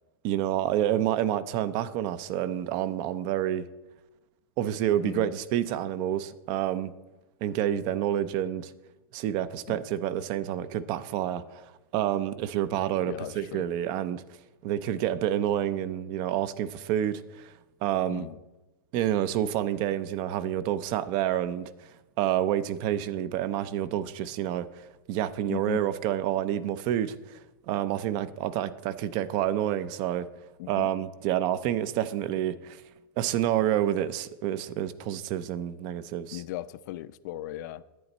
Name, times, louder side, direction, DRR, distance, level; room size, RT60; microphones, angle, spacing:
voice 1, 0.2-3.7 4.6-6.9 7.4-8.7 9.1-14.2 14.6-17.5 17.8-18.3 18.9-21.9 22.2-24.7 25.1-27.4 27.7-30.3 30.7-32.8 33.2-36.4, right 11 dB, 40° right, 0.5 m, -28 dB
voice 2, 5.0-5.3 9.7-9.8 13.1-13.7 18.1-18.4 25.5-25.9 30.6-30.9 36.3-37.8, left 14 dB, 55° left, 0.5 m, -37 dB
11.0 x 9.0 x 4.2 m
supercardioid pair, 150°, 12 cm